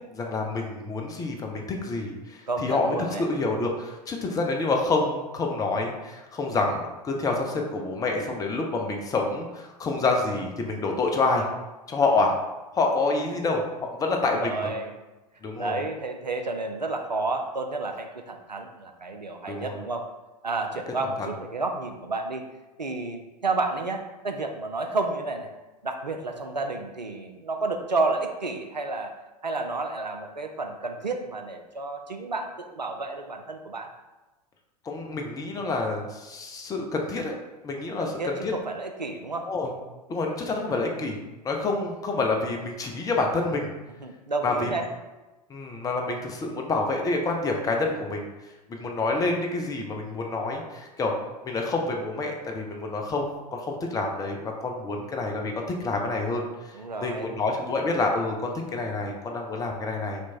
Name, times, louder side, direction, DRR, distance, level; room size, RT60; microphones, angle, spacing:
voice 1, 0.1-11.5 11.9-12.3 12.7-14.7 15.4-15.8 19.5-19.8 34.8-37.4 37.6-38.5 39.4-39.7 40.1-41.2 41.4-43.7 44.4-44.7 45.5-48.3 48.7-51.1 51.4-56.7 57.0-60.2, left 3 dB, 15° left, 1 dB, 0.6 m, -28 dB
voice 2, 2.5-3.2 8.2-8.4 14.3-14.9 15.6-20.1 20.4-22.4 22.8-25.5 25.8-29.1 29.4-33.9 38.0-39.5 44.0-44.9 56.7-57.3, right 3 dB, 90° right, 4 dB, 0.5 m, -31 dB
3.4 x 3.0 x 4.2 m, 1.1 s
figure-of-eight pair, 90°, 21 cm